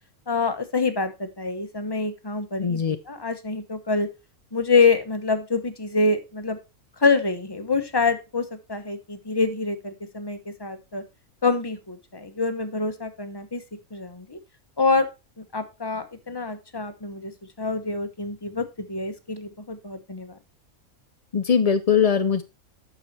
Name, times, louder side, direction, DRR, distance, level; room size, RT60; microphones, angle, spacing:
voice 1, 0.3-4.1 4.5-6.6 7.0-11.0 11.4-13.6 13.9-14.4 14.8-15.1 15.5-17.3 17.6-20.4, left 4 dB, 20° left, 8 dB, 1.0 m, -26 dB
voice 2, 2.6-3.0 21.3-22.4, left 7 dB, 65° left, 9 dB, 0.3 m, -21 dB
8.9 x 6.4 x 4.2 m, 0.26 s
omnidirectional pair, 1.5 m